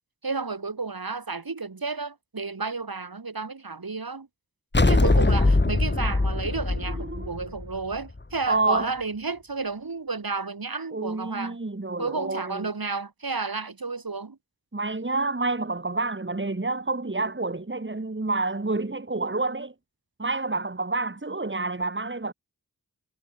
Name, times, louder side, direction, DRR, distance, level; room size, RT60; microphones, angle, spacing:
voice 1, 0.2-4.3 4.9-11.6 12.0-14.4, right 4 dB, 65° right, 3.0 m, -32 dB
sound 1, 4.7-8.2, left 2 dB, 30° left, 1.8 m, -22 dB
voice 2, 6.9-7.3 8.5-8.9 10.9-12.7 14.7-19.7 20.2-22.3, right 3 dB, 30° right, 2.4 m, -28 dB
wide cardioid pair, 45°, 38 cm